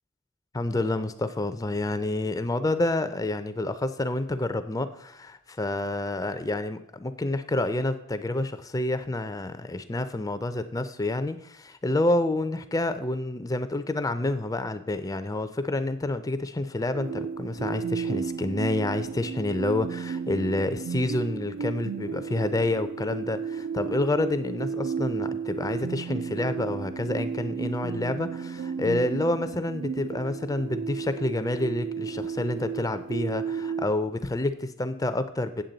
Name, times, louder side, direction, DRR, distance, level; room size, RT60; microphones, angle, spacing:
voice 1, 0.5-35.6, left 2 dB, 15° left, 11 dB, 0.4 m, -28 dB
sound 1, 16.9-33.9, right 6 dB, 70° right, 0.4 m, -33 dB
9.0 x 7.2 x 3.9 m, 0.80 s
head